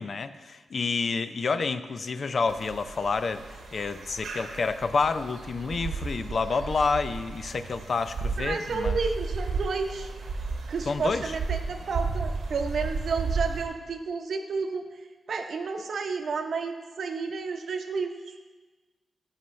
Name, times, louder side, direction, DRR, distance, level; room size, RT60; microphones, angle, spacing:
voice 1, 0.0-3.4 3.7-9.0 10.9-11.4, left 4 dB, 60° left, 11 dB, 0.5 m, -29 dB
sound 1, 2.5-13.7, right 4 dB, 90° right, 1.1 m, -34 dB
voice 2, 8.4-10.1 10.7-14.9 15.3-18.3, right 4 dB, 70° right, 5 dB, 0.8 m, -31 dB
14.0 x 5.7 x 3.2 m, 1.3 s
cardioid pair, 65°, 0 cm